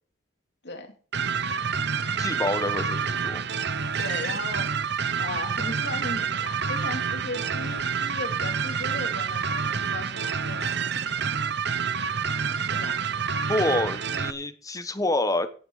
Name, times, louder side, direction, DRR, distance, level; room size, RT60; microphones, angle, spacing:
voice 1, 0.6-0.9 4.0-4.9 5.2-10.8 12.7-13.0, left 2 dB, 60° left, 5 dB, 3.2 m, -37 dB
sound 1, 1.1-14.3, right 6 dB, 65° right, 0.9 m, -28 dB
voice 2, 2.2-3.4 13.5-15.5, left 2 dB, 20° left, 11 dB, 1.1 m, -27 dB
17.0 x 9.2 x 4.9 m, 0.41 s
head